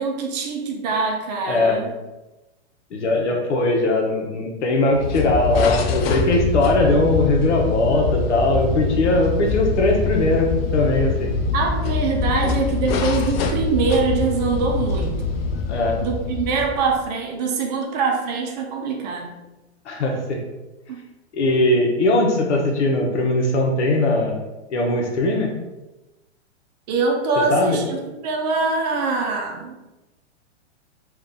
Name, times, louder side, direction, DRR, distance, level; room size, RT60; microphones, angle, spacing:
voice 1, 0.0-1.9 5.5-5.6 11.5-15.4 16.0-19.4 20.9-21.0 26.9-29.8, right 4 dB, 35° right, 1 dB, 0.7 m, -23 dB
voice 2, 1.5-1.8 2.9-11.3 15.7-16.0 19.8-20.4 21.3-24.4 24.7-25.5 27.5-27.8, left 2 dB, 85° left, 1 dB, 1.1 m, -20 dB
sound 1, 4.9-17.1, left 4 dB, 60° left, 0.5 m, -24 dB
3.6 x 2.5 x 3.7 m, 1.0 s
hypercardioid pair, 155°, 34 cm